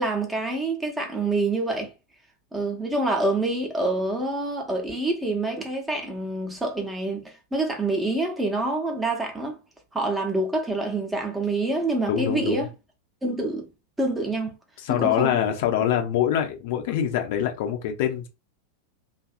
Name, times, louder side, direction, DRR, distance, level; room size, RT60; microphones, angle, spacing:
voice 1, 0.0-1.9 2.5-9.6 9.9-12.7 13.2-13.7 14.0-14.6 14.9-15.3, right 2 dB, 10° right, 0.7 m, -26 dB
voice 2, 12.1-12.7 14.8-18.3, left 10 dB, 50° left, 0.5 m, -24 dB
2.7 x 2.4 x 2.3 m
figure-of-eight pair, 90°, 0 cm